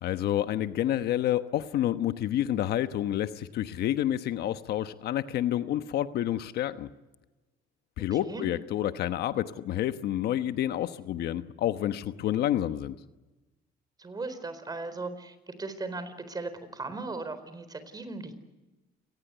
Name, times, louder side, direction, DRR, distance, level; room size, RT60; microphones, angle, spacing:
voice 1, 0.0-6.9 8.0-13.0, left 12 dB, 70° left, 11 dB, 1.1 m, -29 dB
voice 2, 8.1-8.5 14.0-18.3, right 3 dB, 25° right, 11 dB, 4.2 m, -37 dB
29.0 x 19.5 x 8.1 m, 1.1 s
cardioid pair, 110°, 17 cm